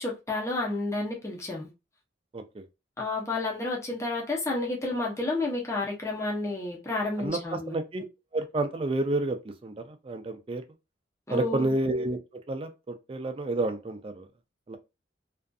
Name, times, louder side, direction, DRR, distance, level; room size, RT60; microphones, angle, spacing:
voice 1, 0.0-1.7 3.0-7.7 11.3-11.7, left 2 dB, 15° left, 0.7 m, -30 dB
voice 2, 2.3-2.6 7.2-8.0 8.3-10.6 11.3-12.2 12.5-14.3 14.7-14.8, right 2 dB, 30° right, 0.4 m, -30 dB
2.5 x 2.4 x 2.3 m
head